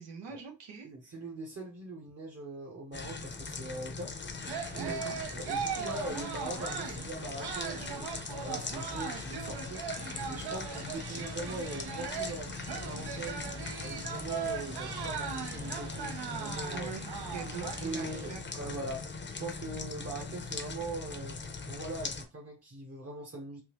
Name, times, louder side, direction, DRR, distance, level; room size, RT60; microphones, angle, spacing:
voice 1, 0.0-0.9 4.8-5.2 16.7-18.8, right 6 dB, 85° right, 3 dB, 1.0 m, -43 dB
voice 2, 0.8-4.2 4.7-5.0 5.3-9.8 10.3-13.4 13.8-16.9 17.6-19.1 19.4-21.4 21.7-23.6, right 2 dB, 35° right, 0 dB, 1.0 m, -41 dB
sound 1, 2.9-22.2, left 4 dB, 25° left, 0.6 m, -41 dB
sound 2, 4.4-18.3, right 6 dB, 65° right, 0.7 m, -39 dB
3.6 x 2.6 x 3.0 m, 0.27 s
cardioid pair, 85°, 42 cm